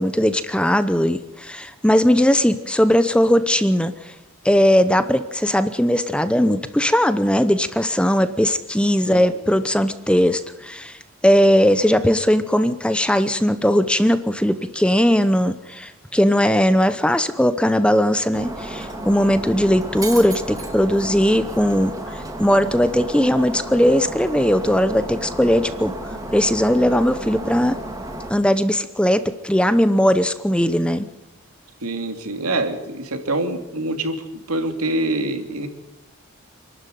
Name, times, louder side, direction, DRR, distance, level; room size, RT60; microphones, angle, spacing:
voice 1, 0.0-4.1 4.4-11.0 11.2-25.9 26.3-27.8 28.3-31.1, equal, 5° left, 12 dB, 0.8 m, -19 dB
Shatter, 18.3-28.3, right 1 dB, 15° right, 2.3 m, -32 dB
voice 2, 31.8-35.7, right 2 dB, 90° right, 6 dB, 2.9 m, -25 dB
27.0 x 12.0 x 9.3 m, 0.98 s
head